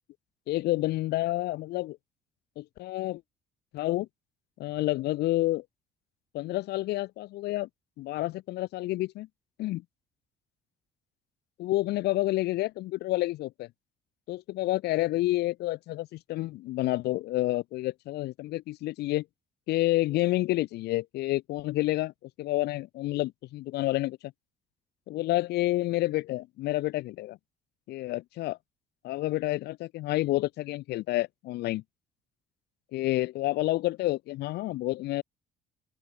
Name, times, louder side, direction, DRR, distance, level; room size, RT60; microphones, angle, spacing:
voice 1, 0.5-2.0 2.6-3.2 3.7-4.1 4.6-5.6 6.3-7.7 8.0-9.3 9.6-9.8 11.6-13.7 14.3-19.2 19.7-24.2 25.1-27.4 27.9-28.6 29.0-31.8 32.9-35.2, left 17 dB, 75° left, 0.8 m, -29 dB
open air
cardioid pair, 110°, 17 cm